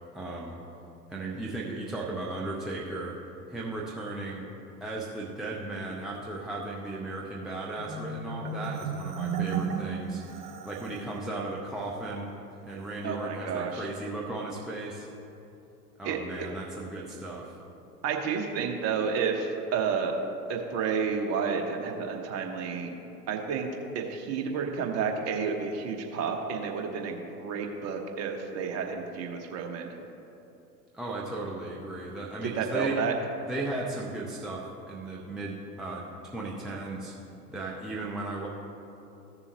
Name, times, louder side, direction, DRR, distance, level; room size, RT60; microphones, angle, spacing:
voice 1, 0.1-0.6 1.1-3.2 3.5-4.4 4.8-12.3 12.6-15.1 16.0-17.6 30.9-33.0 33.4-37.1 37.5-38.5, right 2 dB, ahead, -4 dB, 0.5 m, -36 dB
Marimba xylophone, 7.8-11.1, right 6 dB, 55° right, 1.2 m, -34 dB
voice 2, 13.0-13.9 16.0-16.2 18.0-20.2 20.5-22.9 23.3-23.7 23.9-29.9 32.4-33.1, right 6 dB, 30° right, 3 dB, 1.1 m, -31 dB
15.0 x 6.9 x 2.9 m, 2.8 s
figure-of-eight pair, 90°, 48 cm